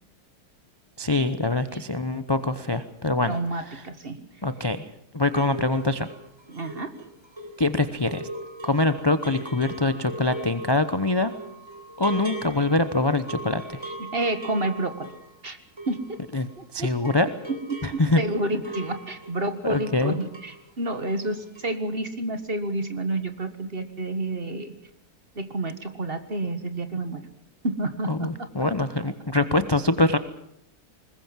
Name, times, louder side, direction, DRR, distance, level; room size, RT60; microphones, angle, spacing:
voice 1, 1.0-3.3 4.4-4.9 5.1-6.1 7.6-8.3 8.6-11.3 12.0-13.8 16.3-16.5 16.7-17.3 17.8-18.2 19.6-20.1 28.1-30.2, left 2 dB, 25° left, 11 dB, 0.6 m, -24 dB
voice 2, 3.2-4.2 6.5-7.0 13.9-15.1 15.4-15.6 15.9-16.2 16.6-17.1 17.5-24.7 25.4-27.3 27.6-28.5, right 2 dB, 35° right, 9 dB, 1.8 m, -30 dB
sound 1, 5.3-16.6 16.9-20.6 20.9-21.3 21.5-21.7, right 1 dB, 15° right, 4.2 m, -40 dB
21.0 x 20.5 x 7.5 m, 0.74 s
omnidirectional pair, 1.8 m